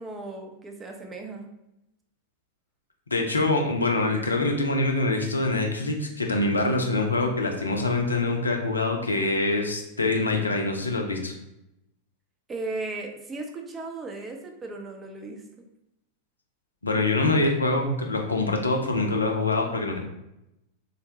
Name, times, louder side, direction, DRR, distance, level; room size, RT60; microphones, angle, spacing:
voice 1, 0.0-1.5 12.5-15.4, right 2 dB, 20° right, 2 dB, 0.5 m, -36 dB
voice 2, 3.1-11.3 16.8-20.0, left 2 dB, 80° left, 3 dB, 0.5 m, -25 dB
3.9 x 2.1 x 2.8 m, 0.87 s
figure-of-eight pair, 90°, 0 cm